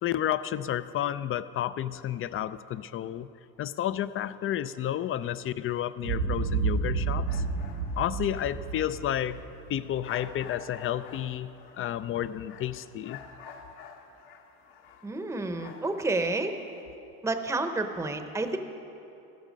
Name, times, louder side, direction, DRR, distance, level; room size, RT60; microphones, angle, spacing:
voice 1, 0.0-3.3 3.6-7.4 8.0-9.4 9.7-13.2, left 11 dB, 30° left, 15 dB, 0.4 m, -31 dB
Boom, 6.0-10.3, right 5 dB, 85° right, 2.2 m, -31 dB
sound 1, 7.3-16.8, left 6 dB, 65° left, 1.5 m, -50 dB
voice 2, 15.0-16.5 17.2-18.6, right 2 dB, 5° right, 7 dB, 0.8 m, -30 dB
14.0 x 12.5 x 5.2 m, 2.9 s
supercardioid pair, 95°, 43 cm